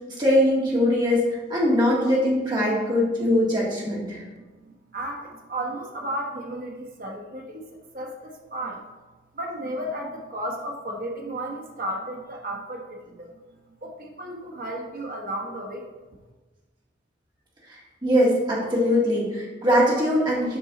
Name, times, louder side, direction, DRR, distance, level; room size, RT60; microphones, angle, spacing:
voice 1, 0.2-4.2 17.7-20.6, left 1 dB, 25° right, -6 dB, 1.9 m, -22 dB
voice 2, 4.4-8.9 9.3-13.4 13.8-15.9, right 1 dB, 50° right, 1 dB, 1.1 m, -34 dB
6.9 x 5.5 x 4.0 m, 1.2 s
head